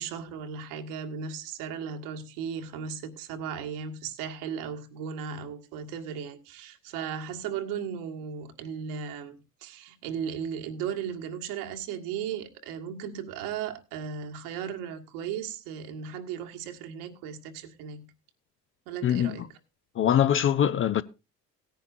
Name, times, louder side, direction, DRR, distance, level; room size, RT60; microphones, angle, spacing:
voice 1, 0.0-18.1 18.8-19.5, right 7 dB, 65° right, 1.8 m, -36 dB
voice 2, 19.0-19.4 20.0-21.0, left 10 dB, 25° left, 0.5 m, -23 dB
18.0 x 10.0 x 2.6 m
hypercardioid pair, 65°, 48 cm